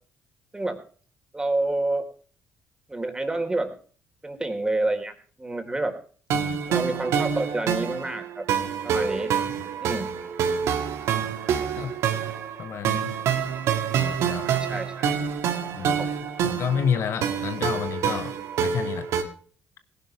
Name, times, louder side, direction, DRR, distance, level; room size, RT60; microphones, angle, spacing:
voice 1, 1.3-2.0 2.9-3.7 4.2-5.1 5.4-6.0 6.7-8.4 8.8-9.3 9.8-10.1 12.2-12.4 14.5-15.1 15.9-16.1, right 2 dB, 15° right, 3.8 m, -28 dB
voice 2, 6.3-6.6 9.5-9.6 11.2-11.3 11.8-12.0 12.6-13.1 13.9-14.5 15.7-16.0 16.4-19.1, left 8 dB, 65° left, 1.3 m, -30 dB
sound 1, 6.3-19.2, right 8 dB, 75° right, 1.9 m, -27 dB
18.5 x 11.0 x 3.3 m
supercardioid pair, 60°, 5 cm